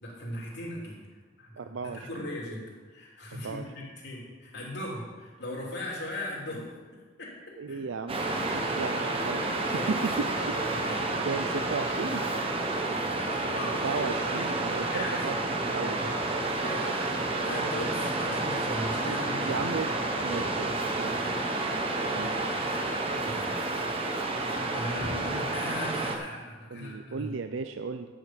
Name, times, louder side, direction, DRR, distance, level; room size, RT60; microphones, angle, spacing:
voice 1, 0.0-1.1 1.4-6.7 6.9-7.8 9.7-10.1 10.8-11.1 13.0-13.8 14.9-15.2 16.4-17.0 17.4-19.6 21.2-21.5 22.8-23.6 24.7-27.3, left 1 dB, 60° left, -3 dB, 3.1 m, -38 dB
voice 2, 1.6-2.3 3.4-3.6 7.6-9.6 9.9-10.5 11.3-12.2 13.6-16.2 19.4-19.9 20.2-21.3 22.1-22.3 26.7-28.1, right 4 dB, 80° right, 8 dB, 0.5 m, -35 dB
Waves surf, 8.1-26.2, right 2 dB, 30° right, 1.0 m, -30 dB
10.5 x 6.4 x 7.5 m, 1.4 s
head